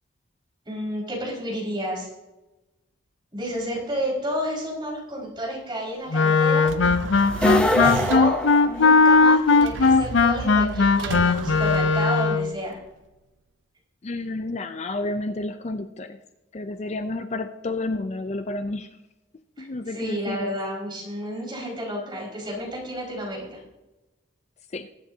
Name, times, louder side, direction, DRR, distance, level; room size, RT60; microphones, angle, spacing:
voice 1, 0.6-2.1 3.3-6.7 8.1-8.4 8.6-12.8 19.6-23.6, equal, 25° right, -4 dB, 5.1 m, -31 dB
Wind instrument woodwind instrument, 6.1-12.5, left 4 dB, 80° left, 0.6 m, -18 dB
sound 1, 6.6-8.5 9.6-12.5, right 4 dB, 75° right, 0.5 m, -33 dB
sound 2, 7.3-9.3, left 1 dB, 5° left, 1.3 m, -24 dB
voice 2, 14.0-16.2 16.5-18.9 19.6-20.6 24.7-24.9, left 2 dB, 35° left, 9 dB, 0.5 m, -30 dB
21.5 x 9.8 x 2.8 m, 1.0 s
head